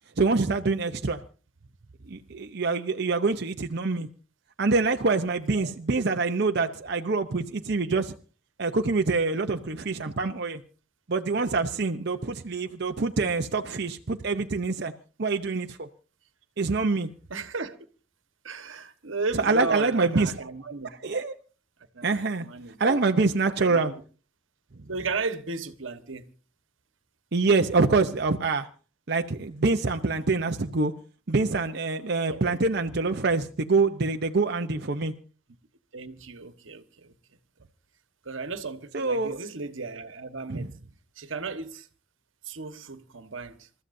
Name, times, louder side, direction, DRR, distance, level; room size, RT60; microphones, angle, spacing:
voice 1, 0.2-1.2 2.1-4.1 4.6-8.1 8.6-10.6 11.1-14.9 15.2-15.9 16.6-17.1 19.4-20.3 21.0-21.3 22.0-22.5 22.8-23.9 27.3-28.7 29.1-30.9 31.3-35.1 38.9-39.4 40.5-40.7, right 3 dB, 55° right, 0.8 m, -25 dB
voice 2, 17.3-17.8 18.4-20.9 21.9-22.8 23.6-24.0 24.9-26.3 32.3-32.5 35.9-37.1 38.2-40.7 41.2-41.9 42.4-43.7, right 4 dB, 85° right, 1.4 m, -35 dB
28.0 x 14.0 x 2.7 m
head